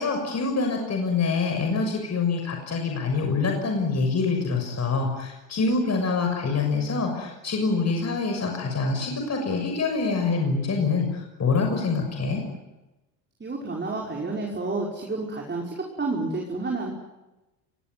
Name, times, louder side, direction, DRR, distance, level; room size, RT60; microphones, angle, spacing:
voice 1, 0.0-11.1 11.4-12.4, left 4 dB, 30° left, 3 dB, 6.6 m, -25 dB
voice 2, 13.4-16.9, right 3 dB, 20° right, -1 dB, 5.9 m, -30 dB
29.5 x 19.5 x 9.6 m, 1.0 s
hypercardioid pair, 65°, 49 cm